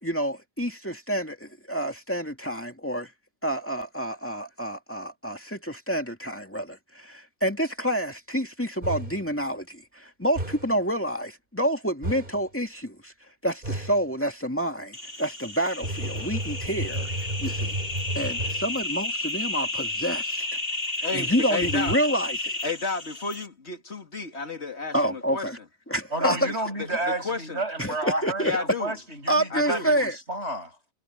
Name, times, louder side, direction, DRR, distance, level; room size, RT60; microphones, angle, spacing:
voice 1, 0.0-3.1 3.4-13.1 13.4-17.1 17.4-17.7 18.1-20.5 21.1-22.6 24.9-25.6 25.9-26.4 27.8-28.6 29.3-30.1, right 1 dB, 10° left, 2.3 m, -28 dB
sound 1, 8.8-9.3 10.4-10.8 12.0-12.4 13.6-14.0 15.8-18.8 21.6-22.0, right 1 dB, 50° right, 4.0 m, -32 dB
sound 2, 14.9-23.5, left 2 dB, 60° left, 3.9 m, -32 dB
voice 2, 21.0-22.0 22.6-25.5 26.3-26.4 26.8-27.6 28.4-28.9 29.5-29.9, left 3 dB, 80° left, 2.9 m, -32 dB
voice 3, 26.1-30.9, right 2 dB, 80° right, 8.3 m, -31 dB
omnidirectional pair, 1.1 m